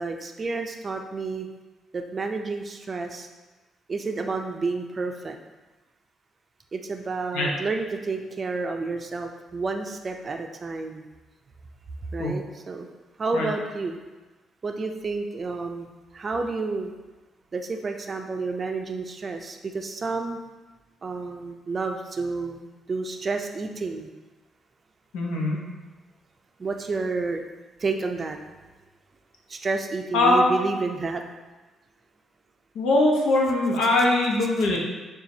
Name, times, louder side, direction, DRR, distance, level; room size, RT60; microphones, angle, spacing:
voice 1, 0.0-1.5 1.9-3.3 3.9-5.4 6.7-11.0 12.1-12.9 13.2-14.0 14.6-16.9 17.5-20.4 21.0-24.1 26.6-27.4 27.8-28.4 29.5-31.2, right 3 dB, 35° right, 4 dB, 0.4 m, -30 dB
voice 2, 25.1-25.6 30.1-30.7 32.7-34.8, left 2 dB, 90° left, -2 dB, 0.8 m, -21 dB
6.9 x 2.4 x 2.7 m, 1.2 s
cardioid pair, 90°, 0 cm